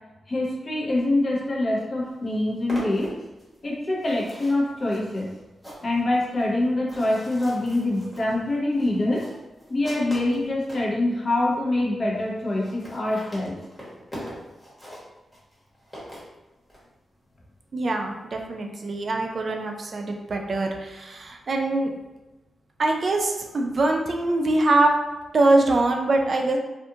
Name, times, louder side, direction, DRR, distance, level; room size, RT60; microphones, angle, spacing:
voice 1, 0.3-3.1 3.6-5.3 5.8-9.2 9.7-13.5, left 1 dB, 45° left, -4 dB, 0.8 m, -25 dB
sound 1, 1.7-1.8 2.1-10.9 11.5-11.6 11.8-11.9 12.1-12.2 12.4-16.8, equal, 15° left, 1.1 m, -42 dB
voice 2, 17.7-21.9 22.8-24.9 25.3-26.6, right 2 dB, 55° right, 2 dB, 0.4 m, -23 dB
2.5 x 2.4 x 2.7 m, 1.1 s
cardioid pair, 85°, 0 cm